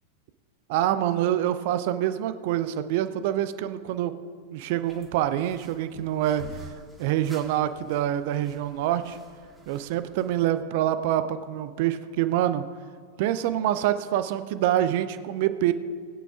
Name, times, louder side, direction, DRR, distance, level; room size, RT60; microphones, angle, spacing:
voice 1, 0.7-4.1 4.5-6.5 7.0-9.2 9.7-12.7 13.2-15.7, right 12 dB, 50° right, 11 dB, 0.6 m, -26 dB
sound 1, 4.9-10.4, equal, 5° right, 2.0 m, -49 dB
20.5 x 9.2 x 2.5 m, 2.1 s
figure-of-eight pair, 90°, 0 cm